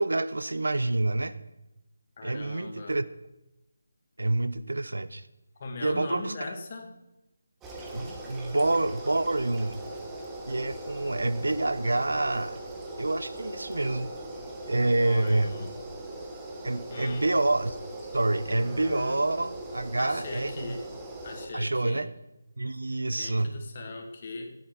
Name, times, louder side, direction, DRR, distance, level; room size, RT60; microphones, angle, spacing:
voice 1, 0.0-1.3 2.2-3.0 4.2-5.3 5.8-6.3 7.9-9.8 10.5-12.6 13.0-14.1 14.6-15.6 16.6-17.8 18.1-20.8 21.5-22.1 22.6-23.6, right 2 dB, 90° right, 14 dB, 1.0 m, -27 dB
voice 2, 2.2-3.0 5.6-6.9 15.0-15.7 16.9-17.3 20.0-20.8 21.2-22.0 23.1-24.5, left 3 dB, 35° left, 3 dB, 2.3 m, -39 dB
sound 1, 7.6-21.5, right 1 dB, 10° right, 1.5 m, -40 dB
15.0 x 9.8 x 6.2 m, 0.93 s
figure-of-eight pair, 165°, 0 cm